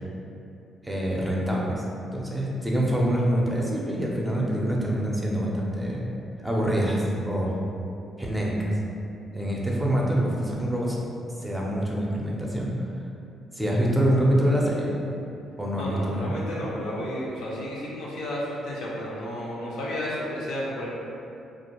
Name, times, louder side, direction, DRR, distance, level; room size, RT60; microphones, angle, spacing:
voice 1, 0.8-1.8 2.1-6.0 6.4-7.5 8.2-8.8 9.3-11.0 11.4-12.7 13.5-14.9 15.6-16.3, equal, 5° right, -3 dB, 0.4 m, -25 dB
voice 2, 15.7-20.9, equal, 90° left, -5 dB, 0.5 m, -32 dB
2.4 x 2.1 x 2.9 m, 2.6 s
cardioid pair, 90°, 0 cm